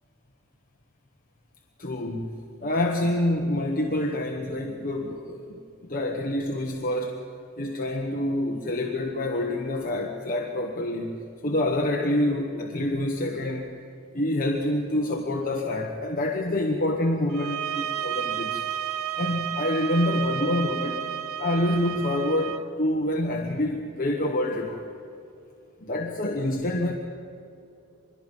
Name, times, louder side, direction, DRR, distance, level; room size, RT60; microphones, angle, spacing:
voice 1, 1.8-2.3 2.6-5.6 5.9-7.3 7.6-11.2 11.4-13.7 14.1-18.6 19.2-21.1 21.4-24.9 25.8-26.9, left 1 dB, 40° left, 1 dB, 1.3 m, -27 dB
sound 1, 17.3-22.6, right 10 dB, 85° right, 0.7 m, -31 dB
25.5 x 22.0 x 5.5 m, 2.6 s
head